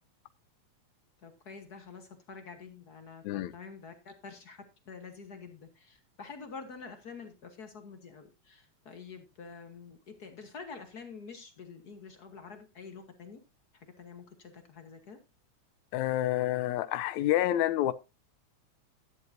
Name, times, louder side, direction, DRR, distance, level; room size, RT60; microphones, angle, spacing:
voice 1, 1.2-13.4 13.7-15.2, left 5 dB, 50° left, 1.3 m, -47 dB
voice 2, 15.9-17.9, left 13 dB, 80° left, 2.0 m, -28 dB
12.5 x 10.5 x 2.7 m
omnidirectional pair, 3.3 m